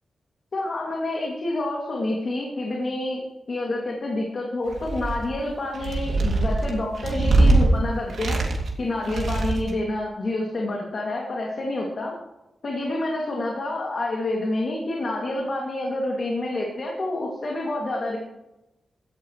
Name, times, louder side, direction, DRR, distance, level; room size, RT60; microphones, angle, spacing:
voice 1, 0.5-3.2 3.5-8.4 8.8-12.2 12.6-18.2, left 2 dB, 45° left, -2 dB, 2.5 m, -28 dB
sound 1, 4.7-5.3 5.7-7.7 8.1-8.7 9.0-9.7, right 2 dB, 70° right, 2.7 m, -22 dB
17.0 x 13.5 x 3.2 m, 0.93 s
wide cardioid pair, 155°, 0 cm